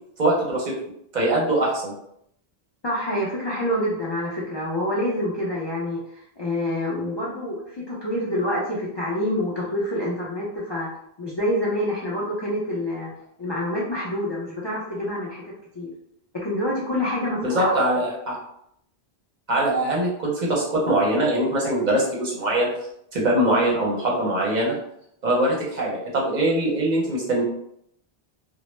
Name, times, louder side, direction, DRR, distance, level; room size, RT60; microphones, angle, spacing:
voice 1, 0.2-0.7 1.1-1.9 17.4-18.4 19.5-22.7 23.1-24.8 25.2-27.4, right 1 dB, 50° right, -3 dB, 0.7 m, -22 dB
voice 2, 2.8-10.9 11.2-13.1 13.4-15.9 16.3-18.0, left 1 dB, 45° left, -6 dB, 0.3 m, -27 dB
2.0 x 2.0 x 3.0 m, 0.73 s
omnidirectional pair, 1.0 m